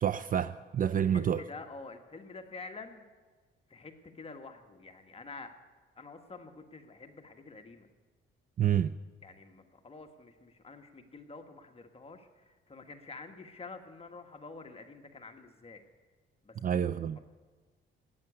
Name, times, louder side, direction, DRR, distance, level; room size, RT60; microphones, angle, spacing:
voice 1, 0.0-1.4 8.6-8.9 16.6-17.2, right 9 dB, 45° right, 14 dB, 0.4 m, -28 dB
voice 2, 1.1-3.1 3.7-5.5 5.9-7.9 9.2-15.8 16.4-16.6, left 3 dB, 30° left, 5 dB, 1.5 m, -48 dB
13.5 x 9.2 x 9.9 m, 1.4 s
cardioid pair, 90°, 20 cm